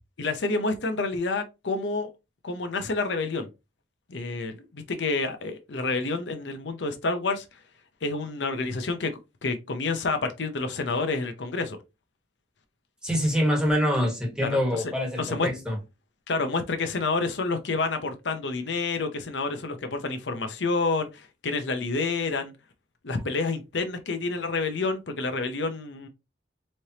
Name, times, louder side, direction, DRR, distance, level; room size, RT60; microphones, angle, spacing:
voice 1, 0.2-2.1 2.4-3.5 4.1-7.4 8.0-9.1 9.4-11.8 14.4-15.5 16.3-22.5 23.0-26.1, left 3 dB, 75° left, 0.7 m, -29 dB
voice 2, 13.0-15.8, equal, 5° right, 1.4 m, -25 dB
4.3 x 3.3 x 2.8 m
head